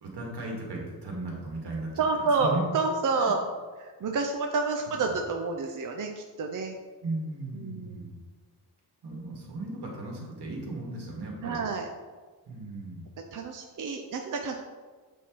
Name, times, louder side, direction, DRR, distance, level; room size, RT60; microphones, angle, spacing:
voice 1, 0.0-2.6 3.2-3.3 4.9-5.0 7.0-8.2 9.0-11.6 12.5-13.0, right 2 dB, 85° right, -2 dB, 2.1 m, -36 dB
voice 2, 2.0-3.4 3.8-6.8 7.5-8.1 11.4-11.9 13.3-14.5, right 4 dB, 50° right, 2 dB, 0.6 m, -29 dB
8.2 x 4.5 x 4.5 m, 1.4 s
wide cardioid pair, 150°, 39 cm